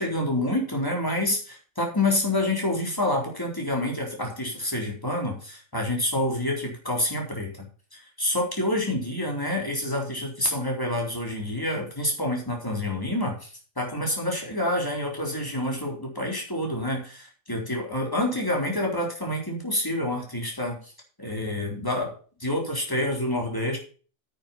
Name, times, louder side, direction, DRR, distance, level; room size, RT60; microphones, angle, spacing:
voice 1, 0.0-13.5 13.8-20.9 21.2-22.1 22.4-23.8, left 1 dB, 15° left, 0 dB, 4.0 m, -28 dB
9.5 x 8.2 x 5.7 m, 0.39 s
omnidirectional pair, 1.2 m